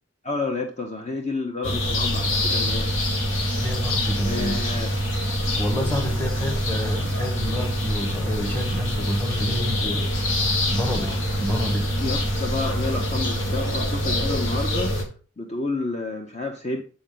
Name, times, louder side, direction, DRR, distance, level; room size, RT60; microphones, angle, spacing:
voice 1, 0.2-2.9 4.2-4.9 12.0-15.0 15.4-16.8, left 3 dB, 30° left, 0.6 m, -30 dB
sound 1, 1.6-15.0, equal, 80° left, 1.5 m, -25 dB
voice 2, 3.6-4.9 5.6-10.3 10.7-11.9, left 1 dB, 10° left, 0.9 m, -29 dB
7.8 x 4.2 x 3.8 m
head